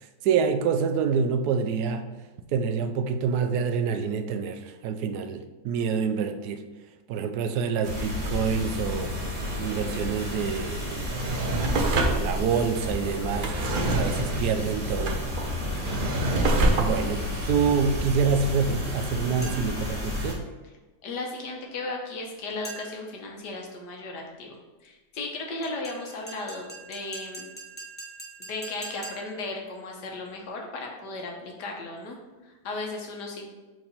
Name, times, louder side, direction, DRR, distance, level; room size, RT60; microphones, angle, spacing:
voice 1, 0.2-2.0 2.5-6.6 7.1-9.1 9.6-11.1 12.0-13.5 13.9-15.2 16.8-20.5, right 6 dB, 80° right, 7 dB, 1.1 m, -27 dB
sound 1, 7.8-20.3, left 1 dB, 45° right, 1.6 m, -32 dB
Drawer open or close, 10.9-18.6 19.0-19.1, right 1 dB, 60° right, 0.5 m, -27 dB
voice 2, 15.6-16.0 21.0-27.4 28.4-32.2 32.4-33.5, left 2 dB, 90° left, 1 dB, 1.6 m, -36 dB
sound 2, 19.4-19.9 22.6-23.2 25.6-29.5, right 2 dB, 10° left, 0.7 m, -43 dB
4.6 x 3.8 x 5.3 m, 1.2 s
omnidirectional pair, 1.7 m